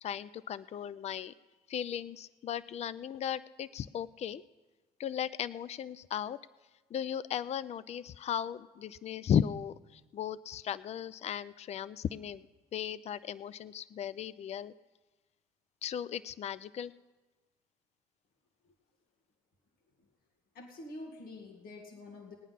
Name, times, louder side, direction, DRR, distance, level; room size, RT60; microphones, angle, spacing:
voice 1, 0.0-1.3 1.7-4.4 5.0-6.4 6.9-12.4 12.7-14.7 15.8-16.9, left 9 dB, 40° left, 18 dB, 0.5 m, -36 dB
voice 2, 20.5-22.3, left 2 dB, 65° left, 2 dB, 2.1 m, -46 dB
19.5 x 9.1 x 5.7 m, 1.2 s
supercardioid pair, 75°, 16 cm